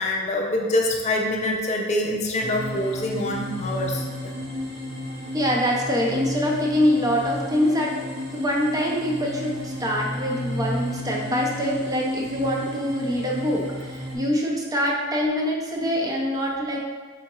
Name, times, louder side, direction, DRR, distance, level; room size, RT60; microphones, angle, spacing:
voice 1, 0.0-4.3, left 1 dB, 35° left, 1 dB, 0.4 m, -25 dB
sound 1, 2.4-14.2, left 1 dB, 65° right, 1.1 m, -33 dB
voice 2, 5.3-8.0 8.3-16.8, equal, 20° right, -2 dB, 0.6 m, -24 dB
5.6 x 3.8 x 2.3 m, 1.5 s
head